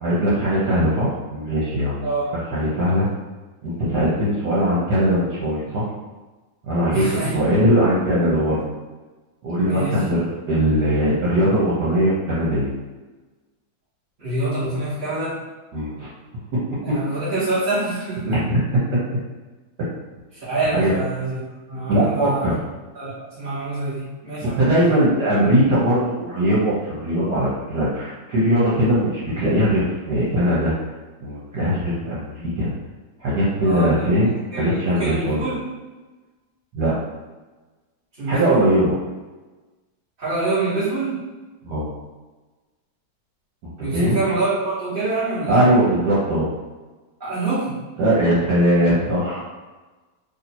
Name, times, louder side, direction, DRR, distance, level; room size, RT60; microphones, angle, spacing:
voice 1, 0.0-2.1 2.5-3.1 3.6-5.9 6.6-8.6 9.4-12.7 14.7-14.8 15.7-16.1 16.5-16.6 16.9-17.0 18.2-18.6 18.9-19.0 20.7-20.9 21.9-22.5 24.4-30.7 31.2-32.7 33.2-35.4 36.7-36.9 38.3-38.9 41.6-41.9 43.6-44.2 45.5-46.5 48.0-49.4, equal, 70° right, -8 dB, 1.5 m, -20 dB
voice 2, 2.0-2.3 6.9-7.4 9.6-10.0 14.2-15.4 16.8-18.4 20.3-21.4 21.7-22.6 22.9-25.0 33.6-33.9 34.2-35.5 38.2-38.7 40.2-41.2 43.8-45.7 47.2-47.8, right 2 dB, 35° right, -12 dB, 1.2 m, -26 dB
3.1 x 2.7 x 4.2 m, 1.2 s
omnidirectional pair, 1.9 m